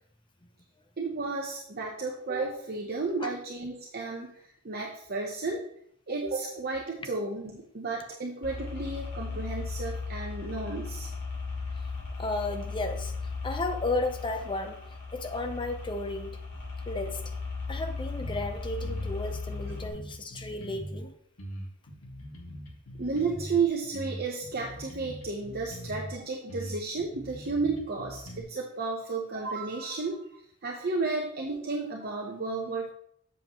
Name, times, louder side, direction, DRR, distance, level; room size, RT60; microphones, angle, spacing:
voice 1, 1.0-5.6 6.1-11.1 23.0-30.2 30.6-32.9, right 4 dB, 45° right, -1 dB, 0.8 m, -32 dB
sound 1, 8.4-19.9, left 4 dB, 55° left, 3.3 m, -37 dB
voice 2, 12.2-13.1 13.4-14.8 15.1-16.4 16.9-17.2 17.7-21.1, left 2 dB, 20° left, 6 dB, 0.7 m, -33 dB
sound 2, 18.2-18.5 18.8-21.0 21.4-23.6 23.9-26.1 26.5-28.4, equal, 90° left, 1.8 m, -41 dB
7.7 x 7.2 x 3.0 m, 0.66 s
head